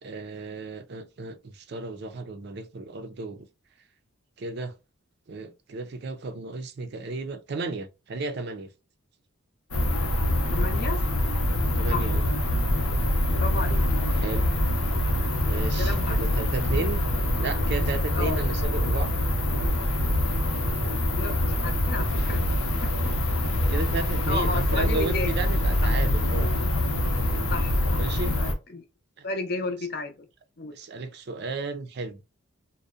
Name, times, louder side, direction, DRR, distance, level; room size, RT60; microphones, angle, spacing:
voice 1, 0.0-3.5 4.4-4.7 5.3-8.7 11.8-12.2 13.9-14.5 15.4-17.0 17.4-19.1 23.7-26.5 28.0-28.4 29.2-29.3 30.7-32.2, right 3 dB, 50° right, 0.4 m, -34 dB
sound 1, 9.7-28.5, left 1 dB, 90° left, 0.7 m, -25 dB
voice 2, 10.5-11.0 11.9-12.1 13.4-13.8 15.8-16.4 18.2-18.4 21.1-22.4 22.8-23.1 24.3-25.3 27.5-28.8 29.2-30.1 30.6-30.7, left 3 dB, 45° left, 0.5 m, -33 dB
2.6 x 2.1 x 2.3 m
head